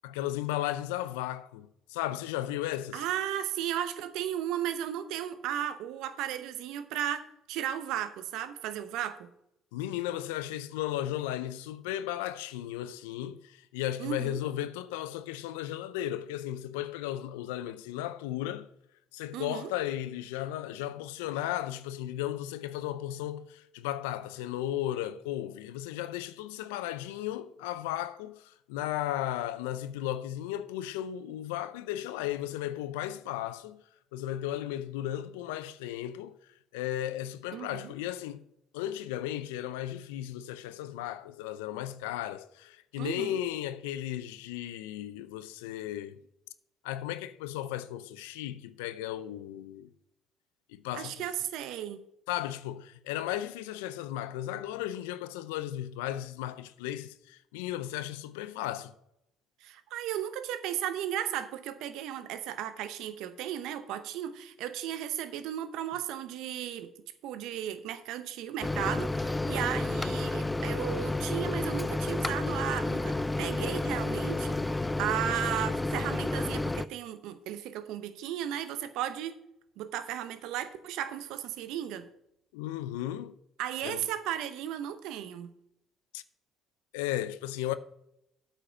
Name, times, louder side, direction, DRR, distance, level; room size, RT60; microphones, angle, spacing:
voice 1, 0.0-3.0 9.7-18.7 19.1-33.8 34.1-36.3 36.7-38.4 38.7-46.2 46.8-49.9 50.7-51.2 52.3-58.9 82.5-83.3 83.8-84.1 86.1-86.2 86.9-87.7, left 13 dB, 90° left, 0.5 m, -35 dB
voice 2, 2.9-9.3 14.0-14.4 19.3-19.7 37.5-37.9 43.0-43.4 50.9-52.0 59.6-66.9 67.2-79.3 79.8-82.1 83.6-85.5, right 11 dB, 75° right, 0.8 m, -35 dB
Microwave oven, 68.6-76.9, left 2 dB, 15° left, 0.4 m, -31 dB
8.4 x 5.3 x 6.0 m
supercardioid pair, 65°, 0 cm